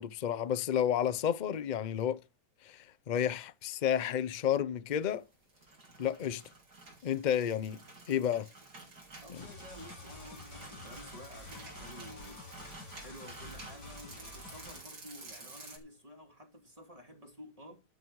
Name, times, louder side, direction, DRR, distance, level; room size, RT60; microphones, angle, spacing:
voice 1, 0.0-2.2 2.6-5.2 6.0-6.4 7.0-7.8 8.1-8.5 9.3-9.5, left 9 dB, 50° left, 0.5 m, -31 dB
sound 1, 5.3-15.8, right 3 dB, 75° right, 3.9 m, -51 dB
voice 2, 9.2-12.5 13.0-17.8, equal, 20° right, 2.7 m, -51 dB
sound 2, 9.3-14.8, left 2 dB, 85° left, 3.2 m, -49 dB
11.5 x 9.7 x 4.8 m
omnidirectional pair, 1.8 m